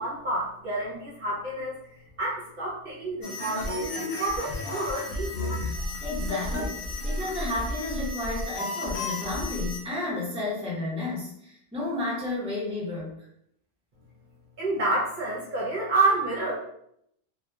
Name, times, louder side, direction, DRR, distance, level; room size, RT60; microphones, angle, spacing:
voice 1, 0.0-1.8 2.2-5.3 14.6-16.5, right 2 dB, 55° right, -5 dB, 0.8 m, -29 dB
sound 1, 3.2-9.8, left 1 dB, 70° left, 0.8 m, -32 dB
voice 2, 6.0-13.2, left 2 dB, 5° right, -6 dB, 0.6 m, -32 dB
2.7 x 2.1 x 2.3 m, 0.73 s
omnidirectional pair, 1.0 m